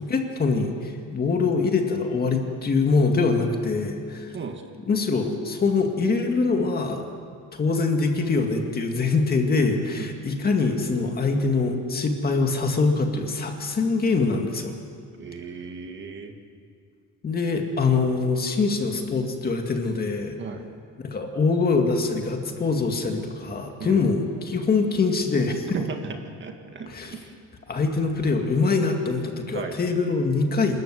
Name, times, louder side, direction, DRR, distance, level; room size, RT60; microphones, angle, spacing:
voice 1, 0.0-4.4 4.9-7.1 7.5-14.7 17.2-20.4 21.0-25.8 26.9-27.2 27.7-30.8, left 4 dB, 30° left, 3 dB, 2.2 m, -24 dB
voice 2, 15.2-16.4 20.4-20.6 23.8-24.1 25.7-27.3 29.5-29.8, right 5 dB, 35° right, 4 dB, 1.9 m, -35 dB
26.0 x 14.0 x 9.4 m, 2.2 s
cardioid pair, 160°, 32 cm